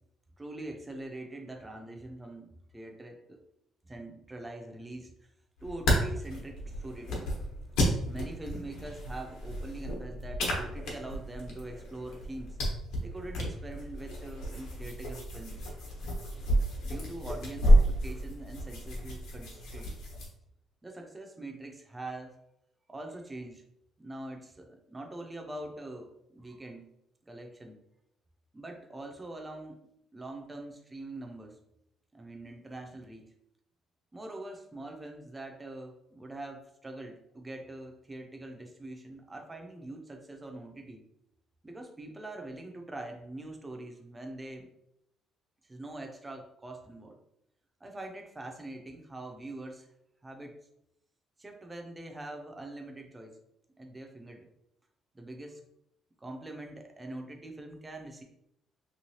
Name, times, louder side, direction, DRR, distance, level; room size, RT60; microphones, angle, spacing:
voice 1, 0.4-3.4 3.8-5.3 5.6-7.3 8.0-12.6 13.0-15.6 16.8-20.0 20.8-22.4 22.9-23.6 24.0-26.9 27.3-27.8 28.5-29.8 30.1-31.6 32.1-33.3 34.1-41.0 41.6-44.7 45.6-47.2 47.8-49.9 50.2-50.6 51.4-53.4 53.8-54.5 55.1-55.6 56.2-58.2, right 2 dB, 10° right, 3 dB, 0.4 m, -43 dB
sound 1, 5.6-20.3, equal, 85° left, 1.0 m, -30 dB
3.1 x 3.0 x 2.7 m, 0.77 s
cardioid pair, 175°, 0 cm